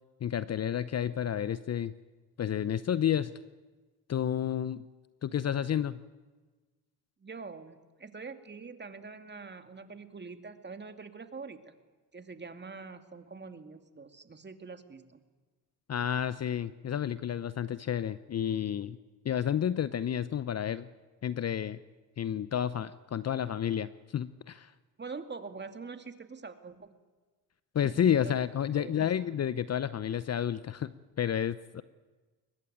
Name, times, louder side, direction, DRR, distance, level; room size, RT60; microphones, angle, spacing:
voice 1, 0.2-1.9 2.4-3.3 4.1-4.8 5.2-6.0 15.9-19.0 19.2-20.9 21.2-21.8 22.2-24.7 27.7-30.9 31.2-31.8, left 9 dB, 35° left, 16 dB, 0.8 m, -30 dB
voice 2, 7.2-11.8 12.1-15.2 25.0-26.9 27.8-28.3 28.7-29.1, right 4 dB, 25° right, 8 dB, 2.5 m, -44 dB
23.0 x 20.5 x 9.3 m, 1.3 s
hypercardioid pair, 70°, 45 cm